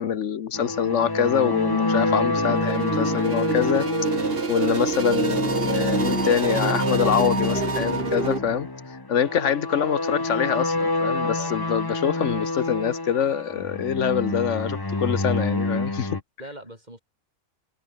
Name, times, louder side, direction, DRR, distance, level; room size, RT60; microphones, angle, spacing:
voice 1, 0.0-3.9 4.5-8.7 9.1-16.2, left 8 dB, 75° left, 1.3 m, -25 dB
sound 1, 0.5-16.2, left 2 dB, 20° left, 1.3 m, -27 dB
sound 2, 2.4-8.4, right 4 dB, 50° right, 1.9 m, -27 dB
voice 2, 9.1-9.5 11.1-11.8 16.4-17.0, right 1 dB, 35° right, 6.2 m, -42 dB
omnidirectional pair, 1.3 m